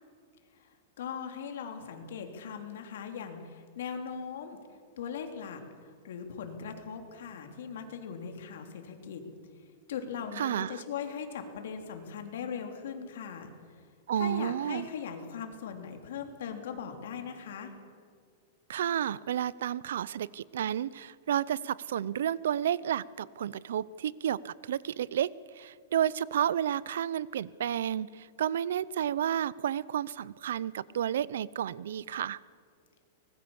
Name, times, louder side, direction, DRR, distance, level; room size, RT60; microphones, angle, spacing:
voice 1, 1.0-4.6 5.0-5.6 6.0-9.2 9.9-13.5 14.1-17.7, left 7 dB, 70° left, 5 dB, 3.2 m, -39 dB
voice 2, 10.4-10.8 14.1-14.9 18.7-32.4, right 10 dB, 80° right, 22 dB, 0.6 m, -31 dB
24.0 x 20.0 x 7.2 m, 2.1 s
supercardioid pair, 175°, 0 cm